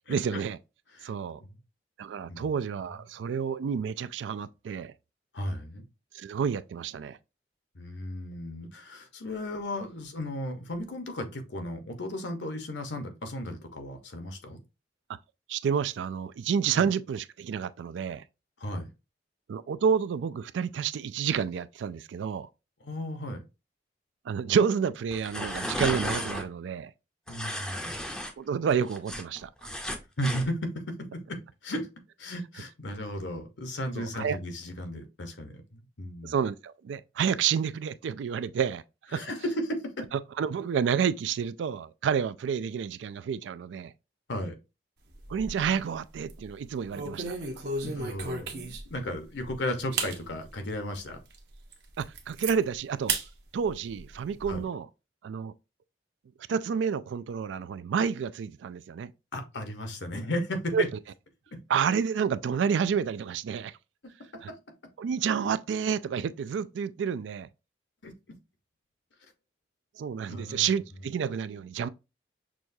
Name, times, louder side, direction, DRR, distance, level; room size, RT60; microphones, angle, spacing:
voice 1, 0.1-0.6 1.0-1.4 2.0-4.9 6.1-7.2 15.1-15.2 15.5-18.2 19.5-22.5 24.3-26.9 28.4-29.7 34.0-34.4 36.2-38.8 39.1-39.3 40.4-43.9 45.3-47.4 52.0-53.2 53.5-54.9 55.2-55.5 56.5-59.1 60.7-60.8 61.7-63.7 64.4-64.5 65.0-67.5 70.0-71.9, right 7 dB, 85° right, 0.3 m, -29 dB
voice 2, 5.3-5.8 7.7-14.6 16.7-16.9 18.6-18.9 22.8-23.4 27.3-28.2 30.2-31.4 31.6-31.9 32.2-36.3 39.1-40.0 44.3-44.6 47.8-51.2 54.5-54.6 59.3-60.9 61.5-61.6 68.0-68.1 70.3-70.8, left 1 dB, 80° left, 1.0 m, -35 dB
sound 1, 25.1-26.5 27.3-28.3 28.7-30.5, equal, 5° left, 0.5 m, -34 dB
sound 2, 45.1-45.8 46.2-46.4 46.9-49.0 49.5-49.6 49.9-50.2 50.7-50.8 51.3-51.4 51.7-52.5 53.1-53.3 53.6-54.6, right 4 dB, 65° right, 0.8 m, -34 dB
6.1 x 2.3 x 2.6 m
head